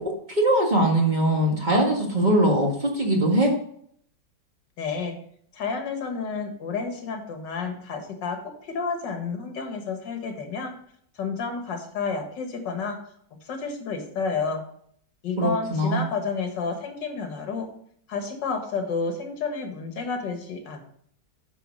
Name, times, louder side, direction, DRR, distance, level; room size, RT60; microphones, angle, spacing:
voice 1, 0.3-3.5 15.4-16.1, right 1 dB, 25° right, 0 dB, 1.7 m, -21 dB
voice 2, 4.8-5.2 5.5-10.7 11.2-13.0 13.4-14.6 15.2-17.7 18.1-20.8, left 4 dB, 90° left, 5 dB, 2.1 m, -30 dB
9.3 x 4.8 x 6.4 m, 0.66 s
omnidirectional pair, 1.9 m